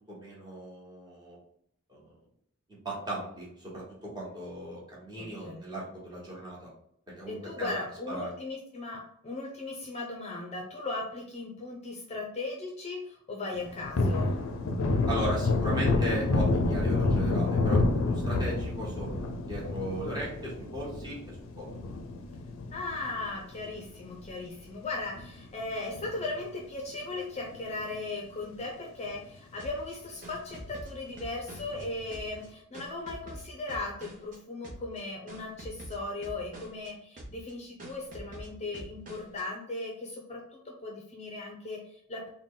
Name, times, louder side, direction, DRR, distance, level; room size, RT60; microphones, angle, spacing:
voice 1, 0.1-1.4 1.9-2.2 2.8-6.7 7.1-7.7 8.1-8.3 15.1-21.2 21.6-21.7, right 1 dB, 20° right, -5 dB, 1.3 m, -37 dB
voice 2, 5.2-5.6 7.3-14.4 22.7-42.3, left 2 dB, 30° left, -1 dB, 0.5 m, -37 dB
Thunder, 13.5-24.3 24.6-24.7 25.1-26.6 26.9-27.0 27.4-28.2 28.6-28.7 29.0-29.1 31.5-32.1, left 2 dB, 80° left, 0.4 m, -29 dB
sound 1, 29.6-31.8 32.1-34.4 34.6-35.0 35.3-36.9 37.2-37.5 37.8-39.4, right 1 dB, 40° right, 0.8 m, -45 dB
3.7 x 2.2 x 3.7 m, 0.70 s
head